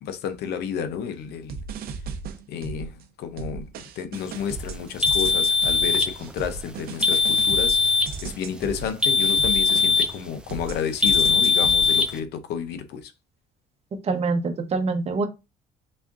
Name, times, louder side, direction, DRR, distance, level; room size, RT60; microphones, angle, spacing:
voice 1, 0.0-1.6 2.5-3.7 4.0-7.9 8.2-13.1, left 7 dB, 75° left, 0.7 m, -31 dB
sound 1, 1.5-3.0 3.4-10.2 10.5-12.0, right 5 dB, 65° right, 0.7 m, -36 dB
sound 2, 5.0-6.1 7.0-8.1 9.0-10.2 11.0-12.1, left 5 dB, 5° right, 0.5 m, -20 dB
voice 2, 14.0-15.3, right 3 dB, 40° right, 1.0 m, -25 dB
4.2 x 3.5 x 2.5 m
cardioid pair, 110°, 17 cm